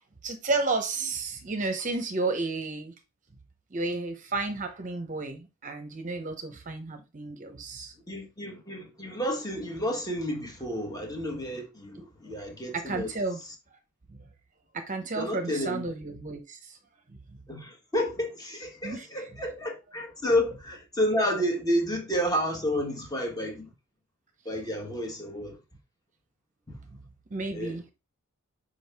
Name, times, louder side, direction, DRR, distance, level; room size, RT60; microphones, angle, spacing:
voice 1, 0.2-2.9 3.7-7.9 12.7-13.4 14.1-14.2 14.7-16.8 17.1-17.2 18.8-19.3 26.9-27.0 27.3-27.9, right 3 dB, 35° right, 0.8 m, -32 dB
voice 2, 8.1-13.1 15.2-15.8 17.5-23.7 24.4-25.6 27.5-27.8, equal, 15° left, 1.4 m, -30 dB
6.2 x 5.0 x 3.5 m
head